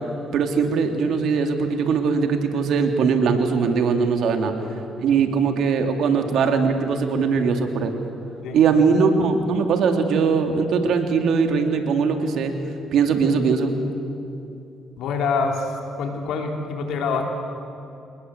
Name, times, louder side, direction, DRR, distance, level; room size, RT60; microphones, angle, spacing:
voice 1, 0.3-4.5 5.0-7.9 8.5-12.5 12.9-13.7, right 5 dB, 70° right, 5 dB, 2.8 m, -20 dB
voice 2, 15.0-17.2, left 4 dB, 75° left, 2 dB, 4.0 m, -26 dB
27.5 x 19.5 x 8.1 m, 2.7 s
supercardioid pair, 75°, 0 cm